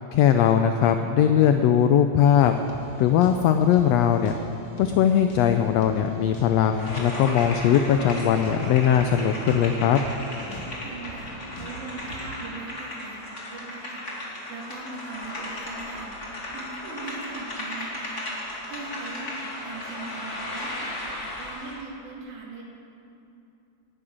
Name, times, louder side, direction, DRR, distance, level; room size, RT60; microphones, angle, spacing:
voice 1, 0.1-2.5 3.0-4.3 4.8-10.0, left 9 dB, 80° left, 7 dB, 1.5 m, -20 dB
sound 1, 2.4-12.6, right 1 dB, 50° left, 2.2 m, -43 dB
sound 2, 6.7-21.8, left 1 dB, 25° left, 2.2 m, -35 dB
voice 2, 10.5-14.1 14.5-16.2 16.5-18.3 18.7-22.6, right 3 dB, 75° right, -3 dB, 3.8 m, -40 dB
12.0 x 11.0 x 8.8 m, 2.8 s
omnidirectional pair, 3.5 m